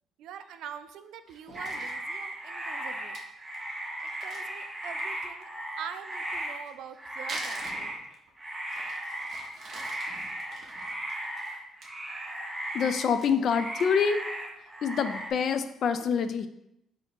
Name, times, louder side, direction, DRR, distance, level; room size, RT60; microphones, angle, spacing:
voice 1, 0.2-3.2 4.2-5.5 5.8-7.9, right 8 dB, 75° right, 10 dB, 0.3 m, -44 dB
Crumpling crinkling, 1.3-2.0 2.5-2.6 2.9-3.0 3.1-3.2 3.5-3.6 4.0-5.2 6.4-8.3 8.7-11.9 12.3-12.5 12.8-14.1 14.5-14.6 15.0-15.4, right 2 dB, 45° right, 0.7 m, -46 dB
sound 1, 1.5-2.0 7.6-8.1 10.1-10.4 10.7-11.0, left 2 dB, 35° left, 1.4 m, -53 dB
sound 2, 1.5-6.7 7.0-8.1 8.4-13.2 13.4-15.3, right 1 dB, 10° right, 0.6 m, -37 dB
voice 2, 12.7-14.2 14.8-16.5, left 6 dB, 50° left, 10 dB, 0.3 m, -26 dB
4.3 x 2.7 x 4.2 m, 0.82 s
cardioid pair, 135°, 0 cm